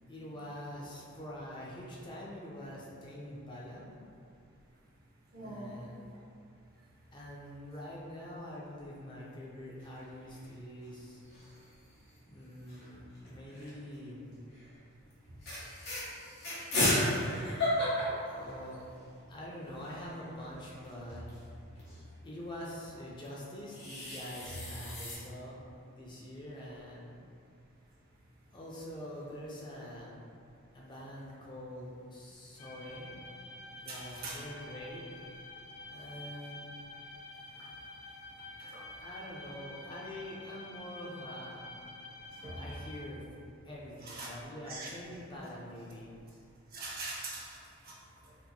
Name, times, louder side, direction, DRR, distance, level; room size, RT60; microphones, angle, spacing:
voice 1, 0.1-3.9 5.4-5.9 7.1-11.2 12.3-14.3 18.3-18.8 19.3-21.5 22.2-25.6 25.9-27.1 28.5-30.2 30.7-33.1 33.8-35.0 35.9-36.6 39.0-41.6 42.5-43.2 43.6-46.2, left 1 dB, 20° left, -5 dB, 0.4 m, -45 dB
voice 2, 5.3-5.8 33.9-34.4 38.6-38.8 42.4-42.6 44.1-44.3 44.7-44.9 46.7-48.0, right 2 dB, 45° right, -5 dB, 0.6 m, -42 dB
sound 1, 9.8-10.5 10.8-10.9 11.1-11.7 12.7-13.9 14.5-14.7 15.1-15.2 15.4-19.1 19.4-19.5 19.7-22.0 23.2-25.2, left 1 dB, 55° left, 1.0 m, -35 dB
sound 2, 32.6-43.0, left 2 dB, 90° left, 0.5 m, -49 dB
3.7 x 2.8 x 2.2 m, 2.4 s
head